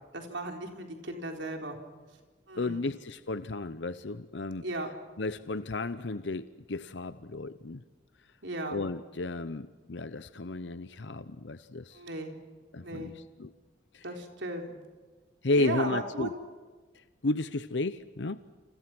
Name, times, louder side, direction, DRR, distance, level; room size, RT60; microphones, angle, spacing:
voice 1, 0.1-1.8 2.5-2.8 4.6-4.9 8.4-8.8 11.9-12.4 12.8-13.1 14.0-14.8 15.6-16.3, right 2 dB, 80° right, 3 dB, 4.1 m, -36 dB
voice 2, 2.6-4.6 5.2-7.8 8.7-12.0 12.7-13.5 13.9-14.0 15.4-16.3 16.9-18.4, left 2 dB, 70° left, 13 dB, 0.8 m, -33 dB
29.0 x 27.5 x 6.2 m, 1.4 s
head